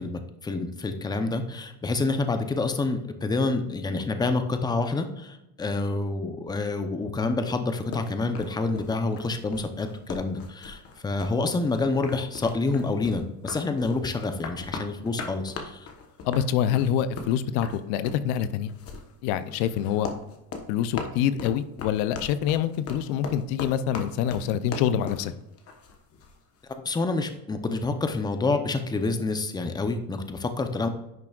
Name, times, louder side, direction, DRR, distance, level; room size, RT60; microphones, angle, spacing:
voice 1, 0.0-15.9 26.8-30.9, left 3 dB, 10° left, 7 dB, 0.7 m, -28 dB
sound 1, 7.9-26.4, left 4 dB, 40° left, 1.2 m, -39 dB
voice 2, 16.2-18.7 19.2-20.1 20.7-25.3, left 9 dB, 90° left, 13 dB, 0.7 m, -26 dB
10.5 x 6.0 x 2.4 m, 0.91 s
cardioid pair, 140°, 35 cm